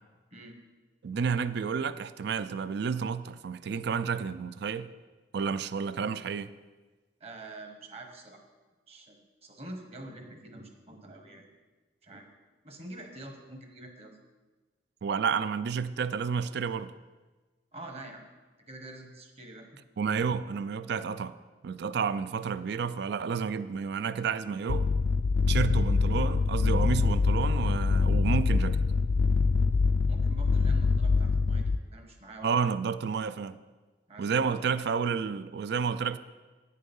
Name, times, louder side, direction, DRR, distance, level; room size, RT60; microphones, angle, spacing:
voice 1, 1.0-4.9 5.3-6.5 15.0-16.9 20.0-21.3 21.6-24.9 25.5-28.8 32.4-33.6 34.2-36.2, right 6 dB, 65° right, 14 dB, 0.4 m, -30 dB
voice 2, 7.2-8.4 8.9-11.4 12.0-12.3 12.6-14.2 17.7-18.2 18.7-19.7 30.1-32.7 34.1-34.6, right 2 dB, 35° right, 4 dB, 1.2 m, -46 dB
sound 1, 24.7-31.8, left 4 dB, 75° left, 0.4 m, -25 dB
9.3 x 6.6 x 5.4 m, 1.2 s
head